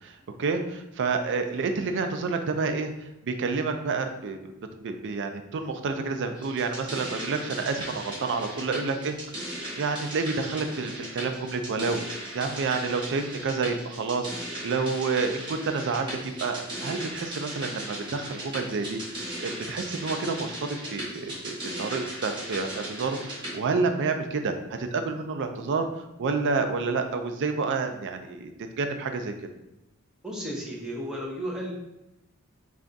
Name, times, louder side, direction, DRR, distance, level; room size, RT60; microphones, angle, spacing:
voice 1, 0.0-4.5 4.8-9.2 9.4-9.5 9.8-25.9 26.2-28.5 28.8-29.3, right 4 dB, 55° right, 6 dB, 0.4 m, -29 dB
sound 1, 6.3-23.5, right 1 dB, 20° right, 1.1 m, -37 dB
voice 2, 30.2-31.7, equal, 5° right, -4 dB, 0.7 m, -33 dB
3.4 x 2.4 x 3.9 m, 0.91 s
head